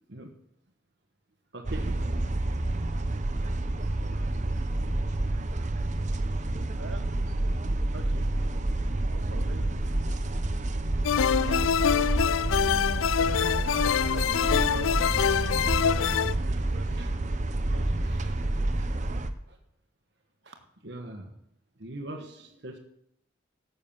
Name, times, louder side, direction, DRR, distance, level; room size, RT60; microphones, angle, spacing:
voice 1, 1.5-2.4 3.4-3.6 4.0-4.1 11.4-11.6 13.0-13.2 16.1-16.2 16.8-17.1 18.0-18.4 18.8-18.9 19.5-19.6 20.8-21.3 21.8-22.8, right 1 dB, 60° right, 4 dB, 1.3 m, -42 dB
sound 1, 1.6-19.3, right 2 dB, 40° right, 0.7 m, -29 dB
voice 2, 6.7-7.0 7.9-8.3 8.8-10.3 11.1-11.9 13.4-14.9 16.0-17.1 17.7-18.1, right 2 dB, 80° right, 5 dB, 1.7 m, -45 dB
sound 2, 11.0-16.3, left 8 dB, 90° left, 0.3 m, -25 dB
12.5 x 7.0 x 7.3 m, 0.78 s
head